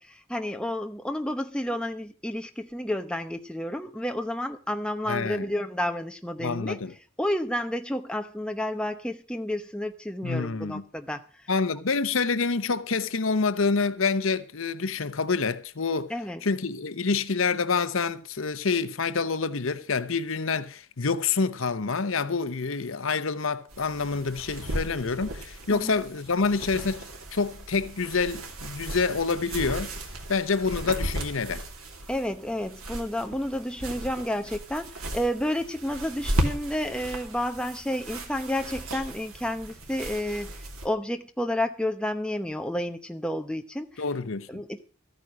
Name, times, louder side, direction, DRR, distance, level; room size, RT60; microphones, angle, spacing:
voice 1, 0.0-6.8 7.2-11.2 16.1-16.4 25.7-26.0 32.1-40.5 40.8-44.0 44.5-44.8, left 1 dB, 5° left, 0.8 m, -30 dB
voice 2, 5.1-5.4 6.4-6.9 10.2-10.8 11.5-16.1 16.4-29.9 30.3-31.6 44.0-44.6, left 4 dB, 70° left, 0.9 m, -27 dB
sound 1, 23.7-40.9, right 1 dB, 90° right, 2.7 m, -36 dB
14.0 x 9.0 x 6.3 m
head